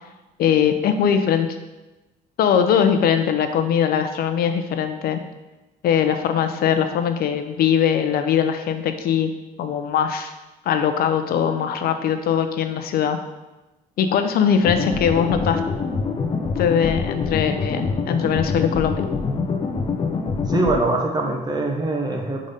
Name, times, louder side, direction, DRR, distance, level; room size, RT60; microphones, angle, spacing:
voice 1, 0.4-1.5 2.4-5.2 5.8-9.3 9.6-10.3 10.6-13.2 14.0-15.6 16.6-19.1, left 8 dB, 65° left, 8 dB, 0.7 m, -21 dB
sound 1, 14.6-20.8, left 4 dB, 30° left, 0.8 m, -25 dB
voice 2, 20.5-22.5, right 2 dB, 25° right, 1 dB, 0.9 m, -23 dB
5.0 x 3.9 x 5.5 m, 1.1 s
cardioid pair, 110°, 17 cm